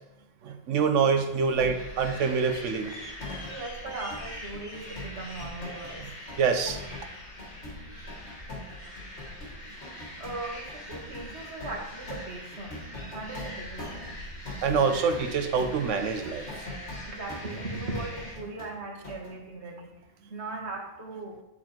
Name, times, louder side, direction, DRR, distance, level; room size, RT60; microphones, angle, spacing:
voice 1, 0.4-2.9 6.4-6.8 14.6-16.5, right 5 dB, 90° right, 7 dB, 1.1 m, -25 dB
sound 1, 1.2-3.6 3.9-5.9 6.3-18.8 19.0-19.4, left 1 dB, 65° left, 2.1 m, -43 dB
sound 2, 1.4-18.3, left 1 dB, 40° left, 1.5 m, -43 dB
voice 2, 3.5-6.1 9.7-14.2 17.0-20.0 20.3-21.4, right 2 dB, 65° right, -1 dB, 1.9 m, -39 dB
9.8 x 4.3 x 4.3 m, 0.91 s
omnidirectional pair, 1.2 m